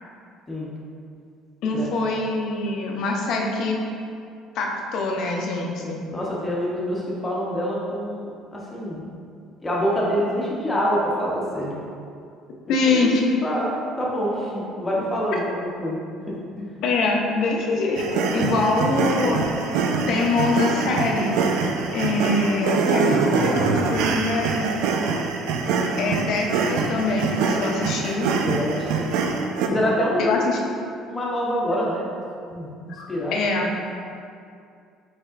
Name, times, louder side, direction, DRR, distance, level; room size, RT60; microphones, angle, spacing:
voice 1, 1.6-3.8 4.5-6.1 12.7-13.3 16.8-19.5 20.1-21.4 21.9-24.8 26.0-28.3 30.2-30.7 33.0-33.7, left 3 dB, 60° left, 0 dB, 0.6 m, -24 dB
voice 2, 6.1-9.0 9.6-11.8 12.8-13.1 13.4-13.7 14.0-16.0 16.3-16.7 18.4-18.5 28.3-29.1 29.7-30.4 31.1-32.1 32.5-32.7 33.1-33.5, equal, 15° left, -5 dB, 0.9 m, -26 dB
sound 1, 18.0-29.7, right 4 dB, 80° right, 0.4 m, -24 dB
5.3 x 3.5 x 2.5 m, 2.4 s
cardioid pair, 150°, 0 cm